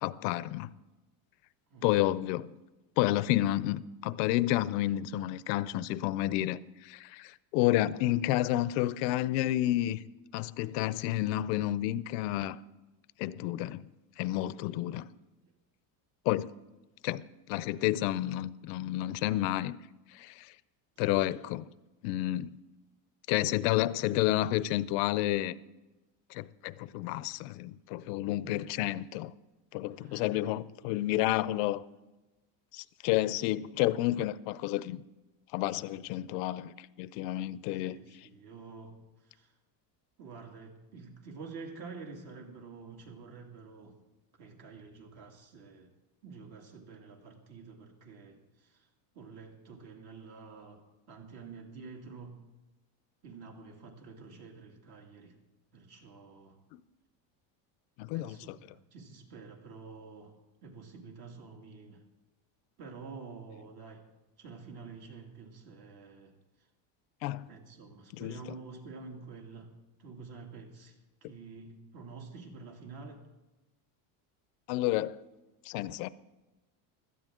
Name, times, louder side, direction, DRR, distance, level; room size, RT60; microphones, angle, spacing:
voice 1, 0.0-0.7 1.8-2.5 3.0-10.0 10.3-12.6 13.2-13.8 14.2-15.1 16.3-16.5 17.0-19.8 20.1-20.5 21.0-21.7 22.0-22.5 23.3-25.5 26.3-29.3 29.7-31.8 32.7-35.0 35.5-38.0 58.0-58.6 67.2-67.5 68.1-68.3 74.7-75.2 75.7-76.1, left 15 dB, 85° left, 0.7 m, -30 dB
voice 2, 1.7-2.1 18.1-18.2 21.0-21.4 28.4-28.6 30.0-30.6 33.1-33.4 37.8-39.0 39.2-39.5 40.2-44.0 44.4-45.9 46.2-48.8 49.1-52.4 53.2-55.3 55.7-56.6 58.1-60.4 60.6-62.0 62.8-64.0 64.4-66.3 67.5-73.2, right 4 dB, 50° right, 2.5 m, -48 dB
16.5 x 13.0 x 3.7 m
cardioid pair, 140°, 48 cm